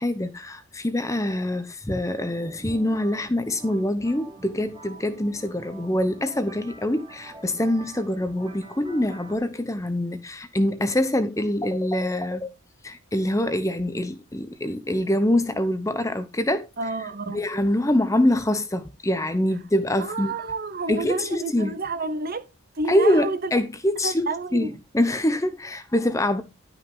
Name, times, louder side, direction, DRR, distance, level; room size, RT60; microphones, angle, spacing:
voice 1, 0.0-12.5 12.8-16.7 17.3-20.3 20.9-21.7 22.9-26.4, left 1 dB, 15° left, 0.7 m, -24 dB
sound 1, 2.0-9.4, right 2 dB, 20° right, 1.7 m, -46 dB
voice 2, 16.8-17.4 20.0-22.5 22.7-23.5 24.0-24.7, right 3 dB, 40° right, 0.8 m, -30 dB
11.5 x 5.6 x 3.8 m
head